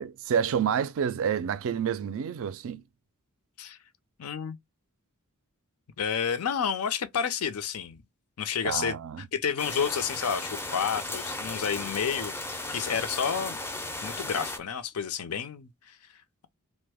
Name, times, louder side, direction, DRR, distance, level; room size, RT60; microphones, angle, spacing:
voice 1, 0.0-2.8 8.6-9.3, right 7 dB, 65° right, 0.4 m, -29 dB
voice 2, 4.2-4.6 6.0-8.0 8.4-9.0 9.3-13.6 14.0-16.0, left 7 dB, 75° left, 0.5 m, -30 dB
sound 1, 9.6-14.6, left 2 dB, 10° left, 0.4 m, -36 dB
3.0 x 2.1 x 3.4 m
head